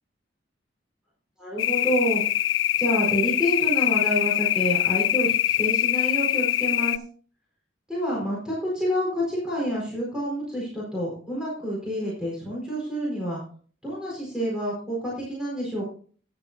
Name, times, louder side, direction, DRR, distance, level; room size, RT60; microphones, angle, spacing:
voice 1, 1.4-2.2 2.8-7.0 7.9-13.4 13.8-15.8, equal, 5° right, -5 dB, 4.4 m, -28 dB
sound 1, 1.6-7.0, left 12 dB, 70° left, 0.4 m, -23 dB
14.0 x 10.5 x 2.7 m, 0.43 s
head